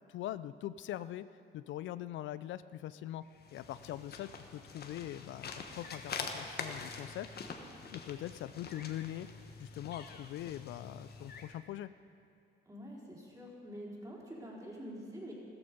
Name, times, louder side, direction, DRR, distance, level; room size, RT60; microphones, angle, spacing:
voice 1, 0.1-1.3 1.5-3.2 3.5-7.3 7.9-9.3 9.6-11.9, left 13 dB, 75° left, 15 dB, 0.4 m, -42 dB
sound 1, 3.3-11.6, left 5 dB, 55° left, 1.3 m, -45 dB
voice 2, 12.6-15.3, equal, 15° right, -4 dB, 4.1 m, -46 dB
14.0 x 14.0 x 5.3 m, 2.5 s
cardioid pair, 90°, 20 cm